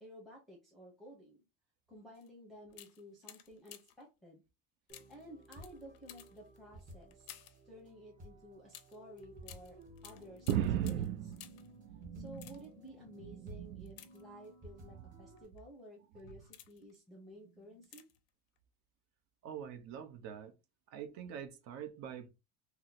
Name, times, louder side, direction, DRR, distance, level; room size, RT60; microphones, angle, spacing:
voice 1, 0.0-1.4 1.9-4.4 5.1-7.3 7.6-11.4 12.1-18.0, equal, ahead, 0.9 m, -54 dB
sound 1, 2.1-2.3 2.7-4.1 4.9-7.7 8.7-11.8 12.2-12.9 13.9-14.7 15.4-15.6 16.2-17.0 17.8-18.3 18.6-18.7, left 12 dB, 50° left, 0.5 m, -56 dB
sound 2, 4.9-15.5, right 1 dB, 25° right, 1.0 m, -56 dB
sound 3, 10.5-12.7 13.1-14.0 14.9-15.2 16.2-16.4, right 10 dB, 90° right, 0.5 m, -37 dB
voice 2, 19.4-20.5 20.9-22.3, right 8 dB, 55° right, 0.7 m, -45 dB
2.9 x 2.0 x 3.9 m
cardioid pair, 135°, 32 cm